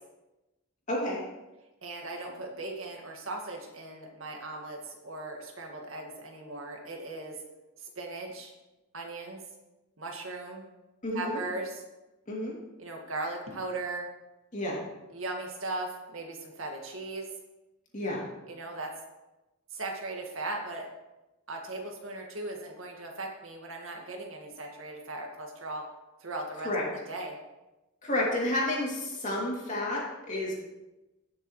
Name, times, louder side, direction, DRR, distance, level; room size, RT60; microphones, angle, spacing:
voice 1, 0.9-1.2 11.0-11.4 12.3-12.5 14.5-14.8 17.9-18.2 26.6-26.8 28.0-30.5, left 1 dB, 35° left, -4 dB, 2.8 m, -30 dB
voice 2, 1.8-7.4 7.8-8.5 8.9-9.4 10.0-10.6 11.1-11.8 12.8-14.1 15.1-17.3 18.5-18.9 19.7-20.9 21.5-25.8 26.2-27.4, right 2 dB, 60° right, 1 dB, 1.9 m, -38 dB
18.0 x 6.8 x 3.2 m, 1.0 s
head